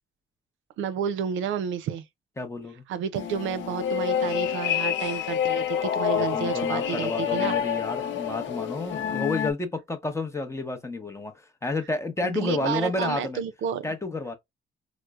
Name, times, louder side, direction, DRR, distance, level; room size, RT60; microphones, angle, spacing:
voice 1, 0.8-2.0 2.9-7.6 12.2-13.8, right 8 dB, 75° right, 0.5 m, -31 dB
voice 2, 2.4-2.8 6.1-13.4 13.8-14.4, left 3 dB, 15° left, 0.7 m, -30 dB
sound 1, 3.1-9.5, left 8 dB, 70° left, 0.4 m, -28 dB
4.2 x 2.0 x 2.3 m
cardioid pair, 90°, 20 cm